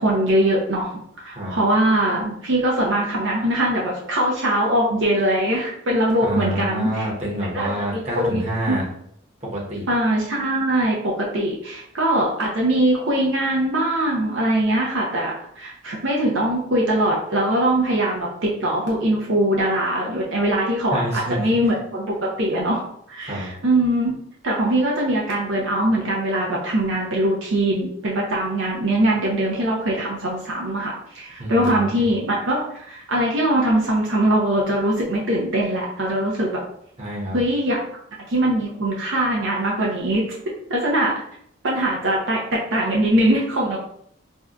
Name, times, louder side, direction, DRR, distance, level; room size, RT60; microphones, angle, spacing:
voice 1, 0.0-7.0 7.5-8.4 8.7-8.9 9.9-24.1 24.4-36.6 37.3-37.8 38.3-40.2 40.7-41.2 41.6-43.8, right 1 dB, 65° right, -2 dB, 0.6 m, -22 dB
voice 2, 6.2-8.8 9.4-9.9 20.9-21.5 23.2-23.5 31.4-32.1 37.0-37.4, equal, 30° right, -5 dB, 0.9 m, -27 dB
2.7 x 2.2 x 3.6 m, 0.69 s
head